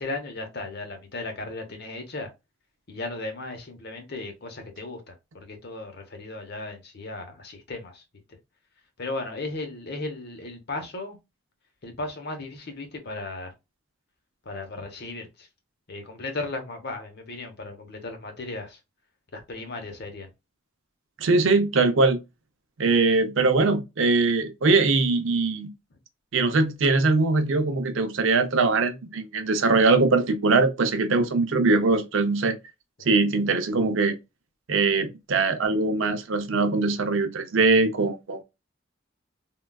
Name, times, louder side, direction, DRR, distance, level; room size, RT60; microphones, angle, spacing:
voice 1, 0.0-2.3 2.9-8.0 9.0-11.2 11.8-13.5 14.4-15.5 15.9-18.8 19.3-20.3 25.9-26.0 33.0-33.1 36.0-36.1, left 2 dB, 55° left, 0.8 m, -36 dB
voice 2, 21.2-22.2 22.8-25.7 26.3-32.6 33.1-34.2 34.7-38.4, right 3 dB, 70° right, 0.6 m, -22 dB
3.6 x 2.3 x 2.2 m
head